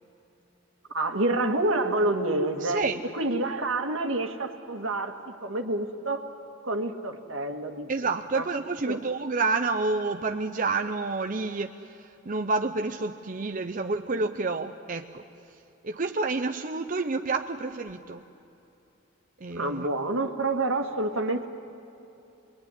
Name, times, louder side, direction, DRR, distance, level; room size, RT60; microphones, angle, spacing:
voice 1, 0.9-2.8 3.1-6.2 6.6-7.9 8.3-8.5 8.9-9.0 19.5-21.5, right 2 dB, 75° right, 5 dB, 2.0 m, -28 dB
voice 2, 2.6-3.0 7.9-15.2 15.8-18.2 19.4-19.9, right 3 dB, 40° right, 6 dB, 0.7 m, -29 dB
26.5 x 21.5 x 9.9 m, 2.8 s
head